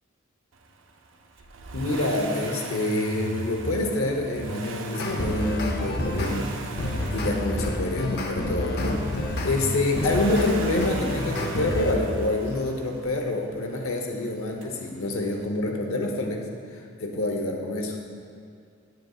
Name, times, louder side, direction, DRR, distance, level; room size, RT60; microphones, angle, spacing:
Accelerating revving vroom, 1.4-13.3 14.6-14.7, right 2 dB, 65° right, 0.5 m, -36 dB
voice 1, 1.7-6.5 6.9-16.5 16.7-18.0, left 2 dB, 85° left, 2 dB, 0.9 m, -27 dB
sound 1, 4.9-6.4 6.8-11.9, left 2 dB, 50° left, 0.7 m, -29 dB
9.3 x 9.0 x 2.4 m, 2.3 s
head